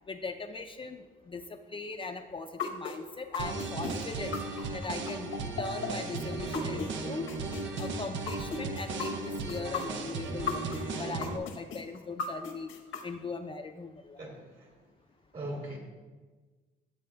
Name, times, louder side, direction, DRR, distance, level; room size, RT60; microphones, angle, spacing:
voice 1, 0.1-1.4 1.7-4.4 4.7-5.3 5.6-7.3 7.8-12.7 13.0-14.2, left 4 dB, 25° left, 6 dB, 0.4 m, -39 dB
sound 1, 2.6-6.9 7.3-10.8 11.2-13.0, left 5 dB, 85° left, 1.0 m, -36 dB
sound 2, 3.4-11.4, right 3 dB, 75° right, 0.7 m, -36 dB
voice 2, 14.2-14.7 15.3-15.8, right 1 dB, 50° right, 0 dB, 2.8 m, -39 dB
12.0 x 7.6 x 2.3 m, 1.3 s
cardioid pair, 90°, 20 cm